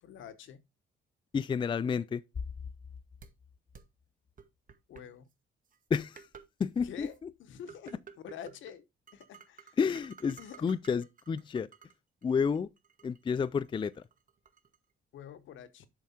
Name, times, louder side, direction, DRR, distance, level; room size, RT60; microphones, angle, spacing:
voice 1, 0.0-0.6 4.9-5.3 6.8-8.9 9.1-9.8 10.4-10.6 15.1-15.9, left 9 dB, 75° left, 1.0 m, -47 dB
voice 2, 1.3-2.2 5.9-6.3 6.6-7.1 9.8-11.7 12.2-12.7 13.0-13.9, left 6 dB, 25° left, 0.4 m, -30 dB
sound 1, 3.2-3.3 3.7-3.8 4.4-5.0 5.7-5.8 6.2-6.5 6.8-7.2 7.7-8.7 9.1-11.9 12.2-14.8, right 6 dB, 45° right, 1.2 m, -52 dB
7.5 x 4.7 x 4.2 m
cardioid pair, 90°, 20 cm